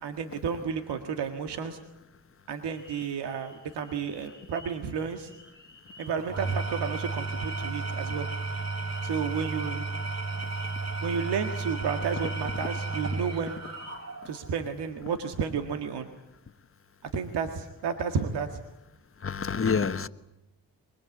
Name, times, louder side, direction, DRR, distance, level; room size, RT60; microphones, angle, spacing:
voice 1, 0.0-1.8 2.5-5.3 6.0-8.3 9.0-9.9 11.0-13.6 14.3-16.1 17.1-18.6, right 6 dB, 80° right, 6 dB, 1.9 m, -32 dB
sound 1, 2.7-14.1, left 1 dB, 55° right, 5.5 m, -53 dB
Engine / Tools, 6.2-14.5, right 3 dB, 40° right, 3.4 m, -33 dB
voice 2, 19.2-20.1, left 5 dB, 35° left, 12 dB, 1.2 m, -28 dB
24.0 x 22.0 x 8.5 m, 0.90 s
cardioid pair, 65°, 40 cm